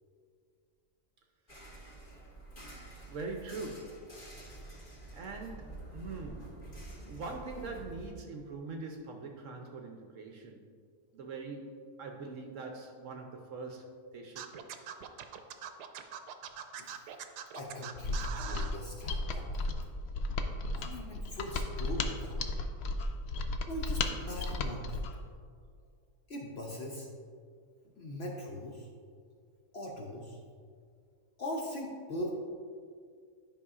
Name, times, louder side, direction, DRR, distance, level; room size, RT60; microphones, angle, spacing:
sound 1, 1.5-8.1, right 2 dB, 35° left, 1.8 m, -48 dB
voice 1, 3.1-4.2 5.1-6.6 7.1-10.7 11.1-13.8 14.1-14.6 27.8-28.0, right 3 dB, 65° right, 3 dB, 0.9 m, -43 dB
Scratching (performance technique), 14.4-18.7, right 8 dB, 85° right, 1.1 m, -42 dB
voice 2, 16.8-17.1 17.5-19.7 20.7-22.4 23.7-25.1 26.3-27.1 28.0-28.9 29.7-30.4 31.4-32.3, equal, 55° left, -1 dB, 0.8 m, -41 dB
Mechanisms, 18.0-25.2, left 2 dB, 80° left, 0.5 m, -34 dB
11.0 x 5.4 x 2.4 m, 2.1 s
omnidirectional pair, 1.7 m